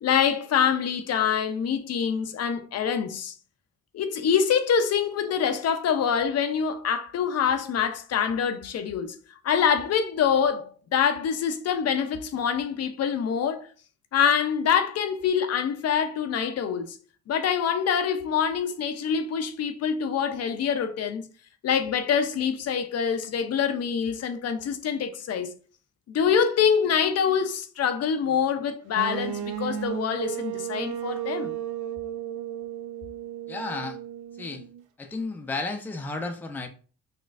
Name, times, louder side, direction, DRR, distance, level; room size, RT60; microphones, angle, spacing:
voice 1, 0.0-3.3 3.9-9.2 9.4-13.7 14.1-17.0 17.3-21.3 21.6-25.5 26.1-31.5, left 7 dB, 55° left, 0.5 m, -25 dB
sound 1, 28.9-34.8, right 11 dB, 80° right, 0.5 m, -34 dB
voice 2, 33.5-34.0 34.4-34.6 35.0-36.7, left 3 dB, 5° left, 0.4 m, -33 dB
4.1 x 2.4 x 2.4 m
cardioid pair, 90°, 30 cm